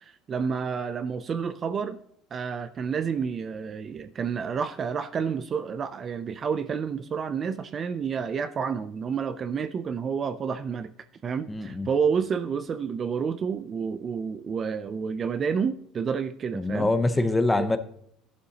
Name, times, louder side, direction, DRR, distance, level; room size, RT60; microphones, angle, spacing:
voice 1, 0.0-2.0 2.3-10.9 11.2-16.9 17.5-17.7, right 6 dB, 25° right, 11 dB, 0.4 m, -29 dB
voice 2, 11.5-11.9 16.5-17.8, left 2 dB, 10° left, 11 dB, 0.7 m, -24 dB
14.5 x 11.0 x 2.8 m, 0.67 s
cardioid pair, 160°, 0 cm